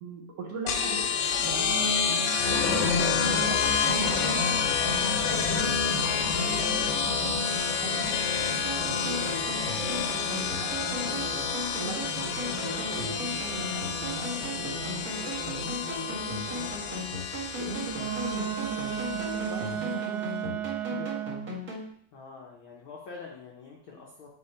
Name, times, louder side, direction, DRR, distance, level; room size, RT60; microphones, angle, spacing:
voice 1, 0.0-1.7 2.1-4.6 4.9-8.2 8.8-11.3 11.8-17.1 17.3-20.6 20.9-21.1, right 3 dB, 60° right, -1 dB, 2.0 m, -40 dB
sound 1, 0.7-19.8, left 6 dB, 85° left, 2.4 m, -28 dB
sound 2, 8.6-21.9, equal, 40° right, 1.4 m, -37 dB
Wind instrument woodwind instrument, 17.9-21.6, right 10 dB, 85° right, 1.5 m, -33 dB
voice 2, 22.1-24.3, left 4 dB, 70° left, -2 dB, 1.2 m, -45 dB
8.5 x 4.4 x 4.4 m, 0.66 s
omnidirectional pair, 3.8 m